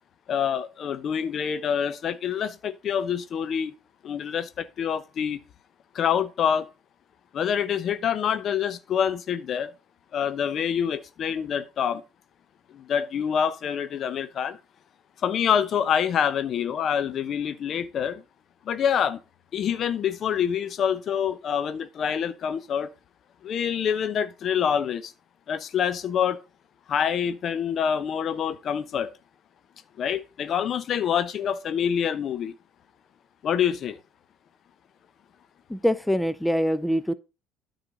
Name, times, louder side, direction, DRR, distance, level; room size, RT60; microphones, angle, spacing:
voice 1, 0.3-3.7 4.0-5.4 5.9-6.7 7.3-9.7 10.1-12.0 12.7-14.6 15.2-18.2 18.6-19.2 19.5-22.9 23.4-25.1 25.5-26.4 26.9-29.1 30.0-32.5 33.4-34.0, left 8 dB, 50° left, 0.8 m, -26 dB
voice 2, 35.7-37.1, equal, 5° left, 0.7 m, -24 dB
9.7 x 4.0 x 6.1 m
hypercardioid pair, 65°, 0 cm